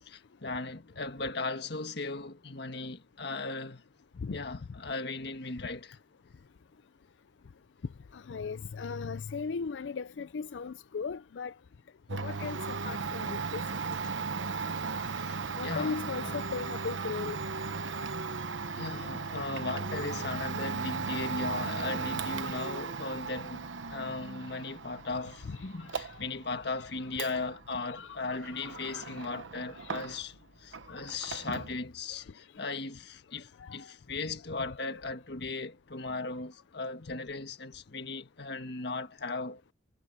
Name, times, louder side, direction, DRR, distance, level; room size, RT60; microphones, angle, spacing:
voice 1, 0.0-3.8 4.3-6.0 15.0-16.4 18.7-39.6, left 3 dB, 60° left, 1.7 m, -37 dB
voice 2, 8.1-11.5 12.1-14.0 15.6-17.4 25.4-26.2 27.2-27.4 27.9-29.1 29.7-30.2 30.9-31.1 33.6-33.9 34.8-35.0, left 5 dB, 75° left, 0.4 m, -38 dB
Domestic sounds home sounds, 12.1-30.4 30.7-31.8, right 4 dB, 90° right, 1.1 m, -37 dB
head